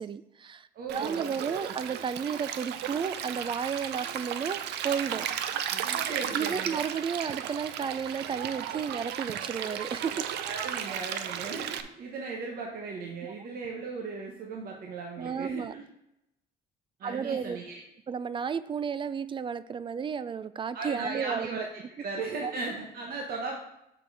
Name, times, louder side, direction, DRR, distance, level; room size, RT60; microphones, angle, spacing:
voice 1, 0.0-0.7 0.9-5.3 6.3-10.3 13.2-13.3 15.2-15.7 17.0-17.6 18.1-21.6 22.4-22.5, right 6 dB, 30° right, 14 dB, 0.3 m, -33 dB
voice 2, 0.7-1.6 5.4-6.8 10.4-15.8 17.0-17.7 20.7-23.6, right 4 dB, 60° right, 0 dB, 1.1 m, -37 dB
Stream, 0.9-11.8, right 9 dB, 80° right, 0.5 m, -35 dB
7.6 x 4.4 x 4.7 m, 0.83 s
cardioid pair, 115°, 17 cm